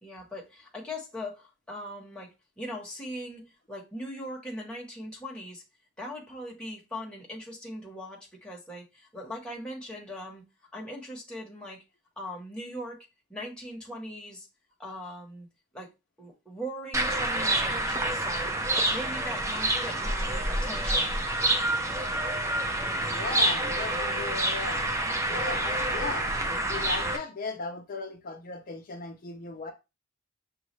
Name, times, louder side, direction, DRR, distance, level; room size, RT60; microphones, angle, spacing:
voice 1, 0.0-5.6 6.0-10.4 10.7-11.8 12.2-14.5 14.8-15.5 15.7-15.9 16.2-18.5 18.9-21.2 25.2-26.0, equal, 5° left, 1.1 m, -40 dB
sound 1, 16.9-27.2, right 1 dB, 15° right, 0.5 m, -28 dB
voice 2, 23.0-24.8 25.3-29.7, left 3 dB, 45° left, 0.6 m, -37 dB
6.2 x 2.4 x 3.1 m
head